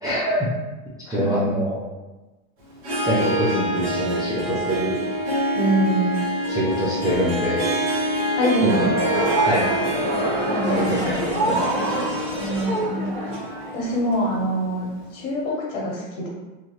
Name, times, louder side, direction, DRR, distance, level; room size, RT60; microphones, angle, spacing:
voice 1, 0.0-0.5 1.1-1.8 3.0-5.0 6.5-7.6 8.6-8.9 9.5-9.7 10.9-11.2 11.4-12.0, equal, 10° right, -10 dB, 0.3 m, -24 dB
voice 2, 1.1-1.4 5.5-6.1 8.4-8.9 10.5-11.8 12.4-13.2 13.7-14.9 15.1-16.3, right 1 dB, 50° left, -4 dB, 1.2 m, -25 dB
Harp, 2.8-14.7, equal, 30° right, 1.0 m, -26 dB
sound 1, 8.7-14.4, right 1 dB, 55° right, 1.2 m, -26 dB
3.1 x 2.3 x 2.8 m, 1.1 s
supercardioid pair, 125°, 43 cm